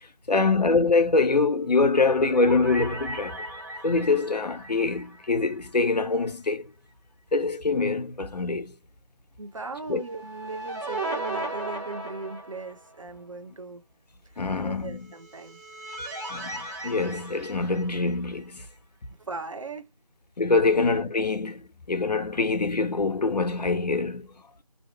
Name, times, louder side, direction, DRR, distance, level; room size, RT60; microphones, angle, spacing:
voice 1, 0.3-3.4 3.8-6.7 7.3-8.7 9.9-10.0 14.4-15.1 16.3-18.7 20.4-24.3, left 3 dB, 85° left, 0.7 m, -24 dB
sound 1, 1.7-6.0 6.3-6.4 9.9-13.0 15.1-18.4, right 2 dB, 30° right, 1.2 m, -37 dB
voice 2, 9.4-13.8 14.6-15.6 19.2-19.9 20.7-20.9, right 3 dB, 50° right, 0.5 m, -38 dB
2.7 x 2.0 x 2.9 m
figure-of-eight pair, 170°, 20 cm